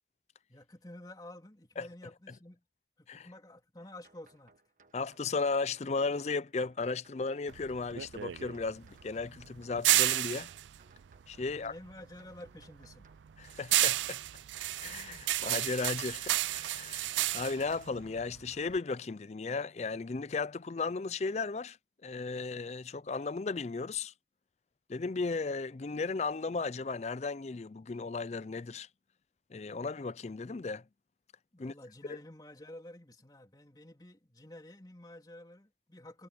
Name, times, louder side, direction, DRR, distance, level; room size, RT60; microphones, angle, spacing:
voice 1, 0.5-2.6 3.0-4.5 11.5-13.1 31.5-36.3, left 1 dB, 20° left, 3.1 m, -51 dB
sound 1, 4.0-17.8, right 3 dB, 45° right, 1.4 m, -65 dB
voice 2, 4.9-10.5 11.3-11.7 13.4-14.2 14.8-21.8 22.0-24.1 24.9-28.9 29.5-30.8 31.6-31.7 32.1-32.2, left 4 dB, 35° left, 0.4 m, -35 dB
sound 2, 7.5-12.0 12.3-18.8, right 15 dB, 85° right, 0.4 m, -32 dB
head